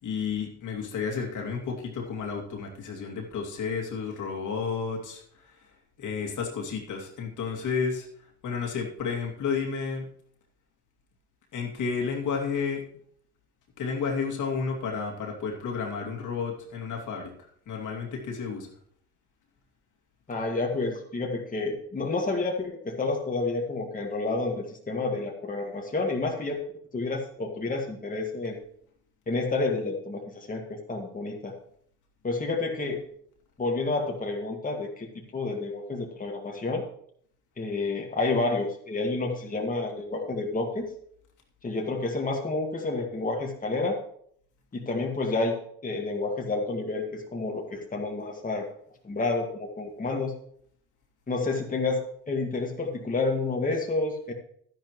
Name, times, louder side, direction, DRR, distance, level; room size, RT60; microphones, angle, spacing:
voice 1, 0.0-5.2 6.0-8.1 8.4-10.0 11.5-12.8 13.8-17.3 17.7-18.7, left 5 dB, 60° left, 1 dB, 2.6 m, -31 dB
voice 2, 20.3-26.6 26.9-28.6 29.3-31.5 32.2-33.0 33.6-36.8 37.6-40.9 41.6-44.0 44.7-48.7 49.0-50.3 51.3-54.3, left 3 dB, 25° left, 1 dB, 2.0 m, -29 dB
11.5 x 10.5 x 3.2 m, 0.63 s
supercardioid pair, 70°, 34 cm